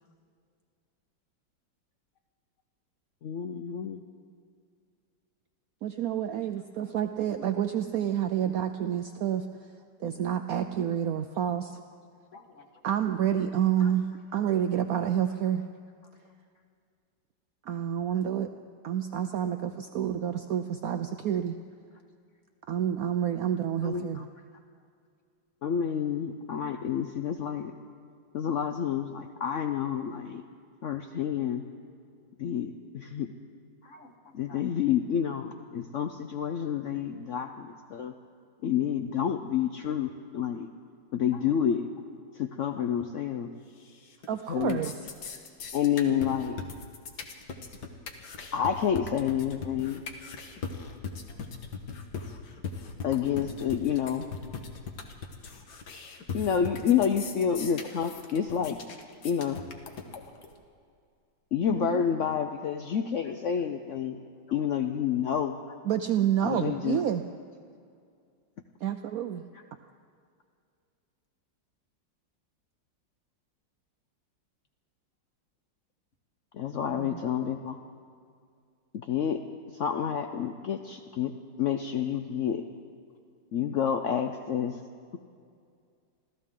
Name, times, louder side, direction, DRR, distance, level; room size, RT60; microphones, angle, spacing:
voice 1, 3.2-4.0 13.8-13.9 23.8-24.3 25.6-27.7 28.3-30.4 30.8-31.6 32.4-33.3 34.3-38.1 38.6-40.7 41.1-41.8 42.4-43.5 44.5-44.8 45.7-46.6 48.5-50.0 53.0-54.2 56.3-58.8 59.2-59.6 61.5-64.2 64.5-65.6 66.4-67.0 76.5-77.8 79.1-79.4 79.7-82.6 83.5-84.8, left 8 dB, 80° left, 6 dB, 0.6 m, -29 dB
voice 2, 5.8-9.5 10.0-11.8 12.8-14.1 14.3-15.6 17.7-18.5 18.8-21.6 22.7-24.2 44.3-45.1 61.7-62.1 65.8-67.2 68.8-69.4 76.9-77.2, right 10 dB, 75° right, 8 dB, 0.8 m, -29 dB
voice 3, 12.3-12.8 33.8-34.6 41.3-41.5 42.7-42.9 51.3-51.5 63.2-63.4 63.9-64.0 64.5-64.7 65.7-65.8, left 3 dB, 45° left, 3 dB, 1.6 m, -51 dB
sound 1, 43.8-44.3 44.5-60.5, left 5 dB, 65° left, 1.7 m, -39 dB
26.0 x 15.0 x 3.7 m, 2.3 s
omnidirectional pair, 2.0 m